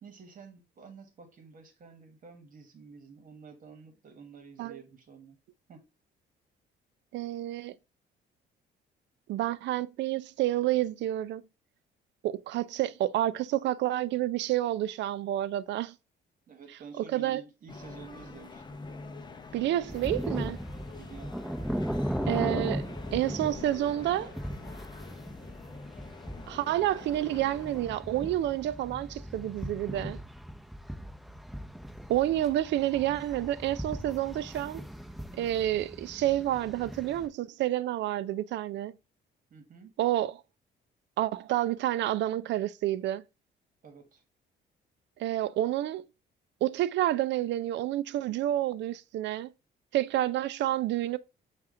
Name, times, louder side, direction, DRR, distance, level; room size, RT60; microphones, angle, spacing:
voice 1, 0.0-5.4 5.7-5.8 16.5-18.8 21.0-21.4 39.5-39.9 43.8-44.2, right 5 dB, 45° right, 1.3 m, -50 dB
voice 2, 7.1-7.7 9.3-11.4 12.2-15.9 17.0-17.4 19.5-20.6 22.3-24.3 26.5-30.2 32.1-34.8 35.3-38.9 40.0-40.4 41.2-43.2 45.2-46.0 46.6-49.5 49.9-51.2, right 13 dB, 70° right, 0.4 m, -29 dB
sound 1, 17.7-27.8, left 3 dB, 25° left, 0.6 m, -46 dB
sound 2, 19.9-37.3, equal, ahead, 0.9 m, -38 dB
5.7 x 2.5 x 3.6 m
cardioid pair, 115°, 19 cm